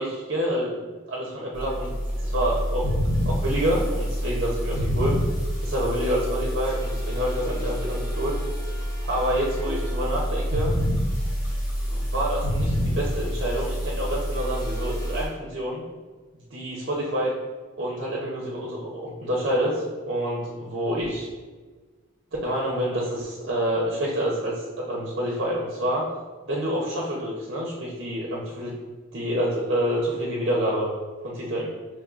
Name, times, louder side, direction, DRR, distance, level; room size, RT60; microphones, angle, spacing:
voice 1, 0.0-2.9 3.3-5.2 5.6-8.4 9.1-10.7 11.9-15.8 16.5-17.3 17.8-21.3 22.4-26.1 26.5-28.8 29.1-30.9 31.2-31.7, equal, 55° right, -3 dB, 0.6 m, -27 dB
sound 1, 1.5-15.3, equal, 40° left, 1.2 m, -27 dB
5.2 x 3.1 x 2.4 m, 1.4 s
head